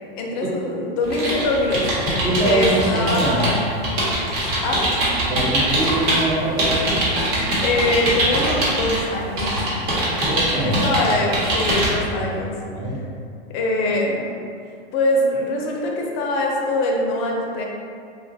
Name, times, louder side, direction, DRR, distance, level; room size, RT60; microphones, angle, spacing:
voice 1, 0.2-3.8 4.6-4.8 7.6-9.6 10.5-12.5 13.5-14.3 14.9-17.6, left 2 dB, 40° left, -1 dB, 0.5 m, -23 dB
sound 1, 1.0-6.2 6.6-9.0 9.4-11.9, right 1 dB, 55° right, 1.1 m, -22 dB
voice 2, 2.2-3.5 5.3-7.0 10.2-10.7 12.1-12.2 12.7-13.0, right 1 dB, 15° right, -5 dB, 0.5 m, -23 dB
2.9 x 2.4 x 2.6 m, 2.4 s
hypercardioid pair, 115°, 31 cm